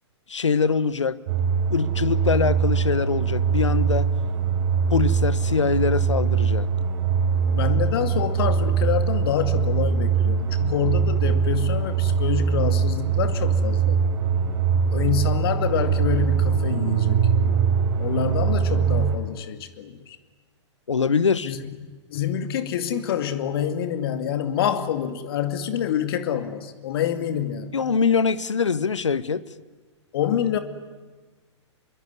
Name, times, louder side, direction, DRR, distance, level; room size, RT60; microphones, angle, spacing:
voice 1, 0.3-1.2 1.7-4.1 4.9-6.7 20.9-21.5 27.7-29.4, left 5 dB, 75° left, 18 dB, 1.1 m, -23 dB
sound 1, 1.3-19.2, right 6 dB, 45° right, 4.6 m, -22 dB
voice 2, 7.5-14.0 14.9-17.3 18.0-20.2 21.4-21.6 21.8-27.8 30.1-30.6, left 9 dB, 50° left, 10 dB, 2.4 m, -27 dB
26.0 x 22.5 x 9.7 m, 1.3 s
figure-of-eight pair, 110°, 15 cm